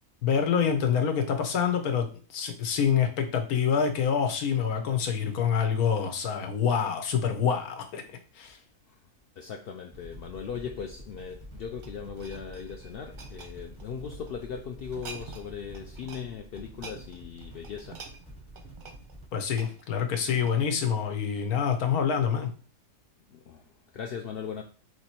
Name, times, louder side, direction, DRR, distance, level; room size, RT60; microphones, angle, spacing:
voice 1, 0.2-8.0 8.4-8.6 19.3-22.5, left 7 dB, 90° left, 6 dB, 1.3 m, -26 dB
voice 2, 9.4-18.0 23.3-24.6, left 7 dB, 70° left, 2 dB, 0.5 m, -39 dB
sound 1, 9.9-19.3, right 1 dB, 5° left, 0.7 m, -47 dB
sound 2, 11.2-14.3 14.8-15.5 15.7-16.3 16.6-20.8 21.4-21.5, right 5 dB, 50° right, 0.6 m, -47 dB
3.5 x 3.0 x 4.3 m, 0.39 s
omnidirectional pair, 1.5 m